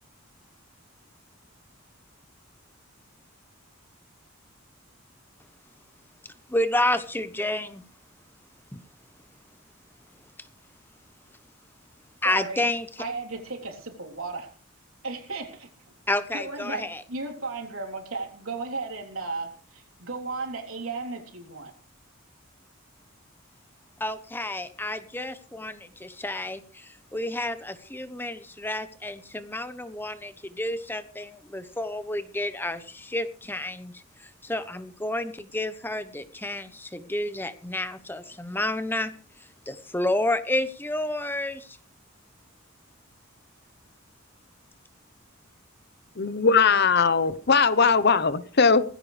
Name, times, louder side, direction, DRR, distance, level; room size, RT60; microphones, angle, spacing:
voice 1, 6.5-7.8 8.7-8.8 12.2-12.9 16.1-17.0 24.0-41.8, left 1 dB, 10° left, 0.8 m, -30 dB
voice 2, 12.2-12.7 13.0-14.5 15.0-15.7 16.3-21.7, right 3 dB, 80° right, 3.6 m, -35 dB
voice 3, 46.2-48.8, left 5 dB, 50° left, 0.8 m, -20 dB
18.0 x 15.5 x 3.4 m
head